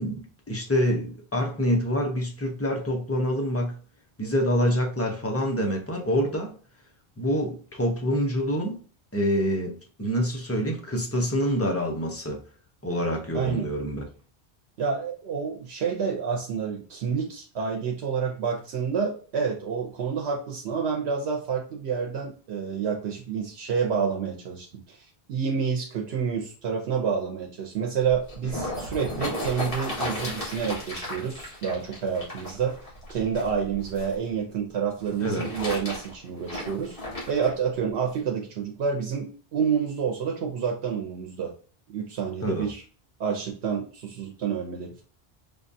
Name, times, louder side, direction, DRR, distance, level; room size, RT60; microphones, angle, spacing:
voice 1, 0.0-3.8 4.2-6.5 7.2-8.8 9.1-12.4 12.8-14.0 28.5-28.6 35.2-35.5 42.4-42.7, equal, 20° left, 0.5 m, -26 dB
voice 2, 13.3-13.7 14.8-32.8 33.1-37.0 37.3-41.5 41.9-42.8 43.2-45.0, right 6 dB, 85° right, 0.9 m, -29 dB
sound 1, 28.1-34.1 35.0-37.5 38.2-38.3, left 1 dB, 60° left, 1.8 m, -35 dB
5.1 x 2.3 x 2.6 m
omnidirectional pair, 1.1 m